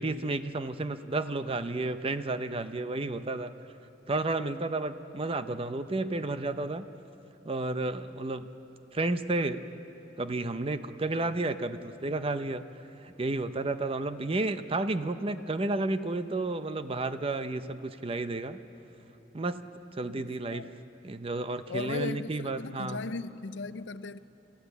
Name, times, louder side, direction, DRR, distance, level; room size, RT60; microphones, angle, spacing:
voice 1, 0.0-3.5 4.1-6.9 7.4-8.5 8.9-9.6 10.2-12.6 13.0-18.6 19.3-19.6 20.0-20.7 21.0-23.0, right 2 dB, 30° right, 11 dB, 0.6 m, -31 dB
voice 2, 20.1-20.8 21.7-24.2, left 3 dB, 70° left, 14 dB, 0.5 m, -37 dB
27.5 x 14.5 x 8.1 m, 3.0 s
head